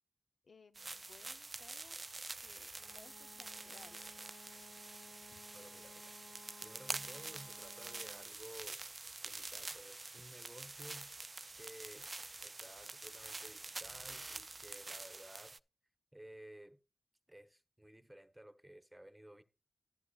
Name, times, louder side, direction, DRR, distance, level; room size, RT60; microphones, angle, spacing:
voice 1, 0.4-2.1 2.4-4.0 5.3-5.4, left 4 dB, 85° left, 0.6 m, -62 dB
sound 1, 0.7-15.6, right 3 dB, 40° right, 0.3 m, -47 dB
Wind instrument woodwind instrument, 2.7-8.4, left 3 dB, 60° left, 1.0 m, -60 dB
voice 2, 5.5-6.1 6.6-8.8 9.2-11.1 11.5-12.1 12.4-15.6 16.1-16.8 17.3-19.4, right 1 dB, 10° right, 1.0 m, -55 dB
12.0 x 10.0 x 2.4 m
wide cardioid pair, 75°, 0 cm